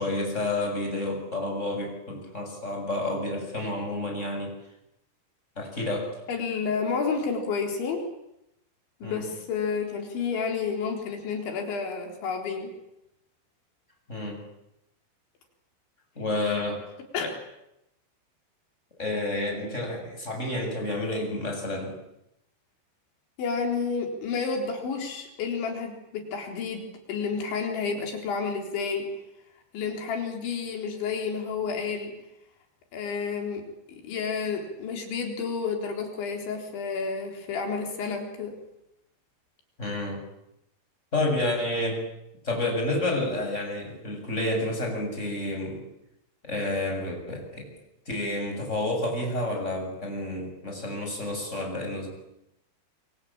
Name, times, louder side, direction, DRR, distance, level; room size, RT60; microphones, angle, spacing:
voice 1, 0.0-4.5 5.6-6.1 9.0-9.3 14.1-14.4 16.2-16.8 19.0-22.0 39.8-40.2 41.1-42.0 42.4-45.8 46.4-47.6 48.1-52.1, left 2 dB, 15° left, 1 dB, 7.7 m, -30 dB
voice 2, 6.3-8.0 9.0-12.7 17.1-17.4 23.4-29.1 29.7-32.1 32.9-33.6 33.9-38.5, left 5 dB, 75° left, 3 dB, 6.3 m, -30 dB
28.0 x 24.0 x 8.8 m, 0.84 s
omnidirectional pair, 5.4 m